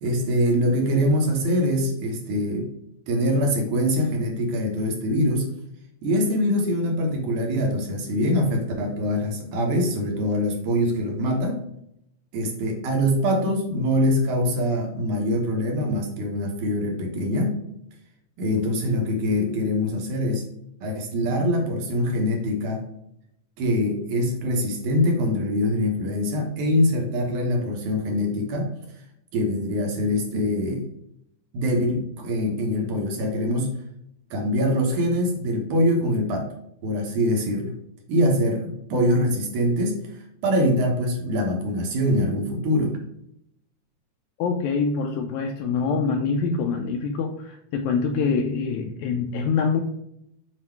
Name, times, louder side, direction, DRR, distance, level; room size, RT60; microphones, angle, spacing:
voice 1, 0.0-2.7 3.1-5.5 6.0-11.6 12.3-17.6 18.4-20.5 20.8-22.8 23.6-28.7 29.3-30.9 31.5-33.8 34.3-36.5 36.8-37.7 38.1-40.0 40.4-43.0, equal, 70° right, 1 dB, 2.4 m, -23 dB
voice 2, 44.4-49.8, left 5 dB, 90° left, 3 dB, 1.6 m, -25 dB
7.5 x 2.9 x 4.4 m, 0.78 s
omnidirectional pair, 3.9 m